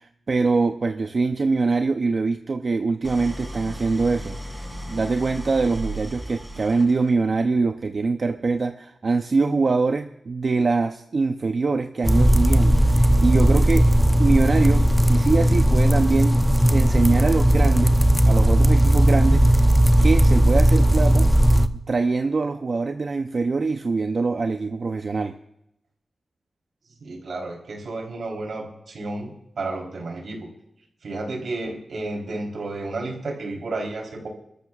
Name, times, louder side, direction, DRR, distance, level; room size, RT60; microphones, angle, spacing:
voice 1, 0.0-4.6 4.9-13.9 14.2-18.0 18.3-19.5 20.0-21.3 21.9-25.3, right 4 dB, 55° right, 7 dB, 0.6 m, -23 dB
Idling, 3.0-7.3, equal, 15° right, 2.8 m, -35 dB
sound 1, 12.0-21.7, right 1 dB, ahead, 0.7 m, -17 dB
voice 2, 27.0-30.5 31.0-34.3, right 2 dB, 85° right, 1 dB, 3.6 m, -32 dB
28.5 x 13.5 x 2.4 m, 0.82 s
wide cardioid pair, 110°, 0 cm